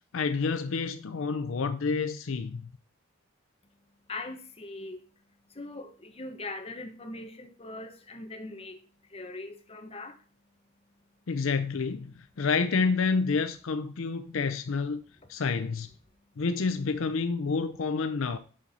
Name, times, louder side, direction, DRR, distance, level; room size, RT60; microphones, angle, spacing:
voice 1, 0.1-2.6 11.3-15.0 15.3-15.9 16.4-18.4, left 4 dB, 70° left, 0.5 m, -29 dB
voice 2, 3.6-10.3 10.6-11.2 14.3-14.4 15.2-15.3 16.1-16.4, left 2 dB, 30° left, 1.0 m, -42 dB
7.4 x 5.4 x 4.1 m
head